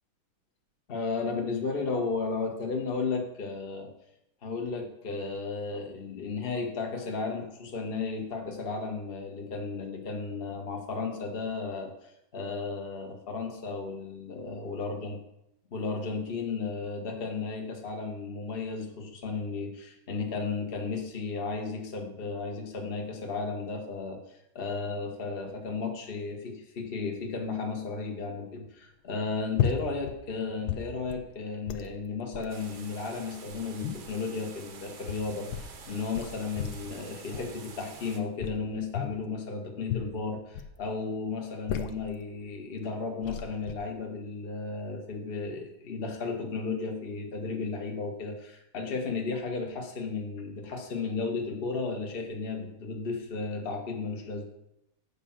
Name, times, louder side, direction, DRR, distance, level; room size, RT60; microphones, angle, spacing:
voice 1, 0.9-3.9 4.4-15.1 15.7-54.4, left 4 dB, 35° left, 2 dB, 1.2 m, -34 dB
sound 1, 29.5-30.2 30.5-31.3 31.7-31.9 32.3-32.6 33.3-34.2 34.9-35.8 36.2-37.0 37.3-37.7 38.4-39.2 39.8-40.8 41.4-42.1 42.8-42.9 43.2-43.7, left 9 dB, 65° left, 1.1 m, -34 dB
sound 2, 32.5-38.2, right 5 dB, 70° right, 1.8 m, -48 dB
8.5 x 5.0 x 7.2 m, 0.83 s
omnidirectional pair, 2.2 m